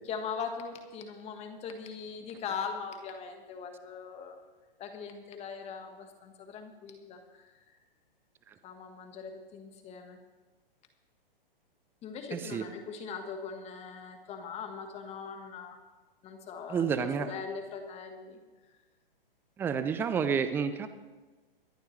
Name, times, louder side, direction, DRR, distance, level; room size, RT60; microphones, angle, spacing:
voice 1, 0.1-4.4 4.8-7.5 8.6-10.2 12.0-15.8 16.2-18.4, left 6 dB, 20° left, 5 dB, 1.5 m, -40 dB
voice 2, 12.3-12.6 16.7-17.3 19.6-20.9, right 6 dB, 10° right, 11 dB, 0.4 m, -30 dB
23.5 x 10.5 x 3.3 m, 1.2 s
hypercardioid pair, 135°, 29 cm